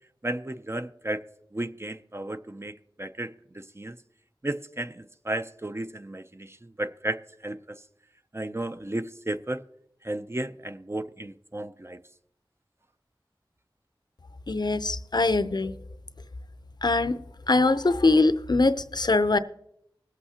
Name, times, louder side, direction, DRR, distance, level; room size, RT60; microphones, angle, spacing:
voice 1, 0.2-1.2 1.5-4.0 4.4-7.8 8.3-9.6 10.0-12.0, right 1 dB, 30° right, 0.5 m, -34 dB
voice 2, 14.5-15.8 16.8-19.4, left 3 dB, 55° left, 0.5 m, -23 dB
20.5 x 8.2 x 2.8 m
wide cardioid pair, 50°, 9 cm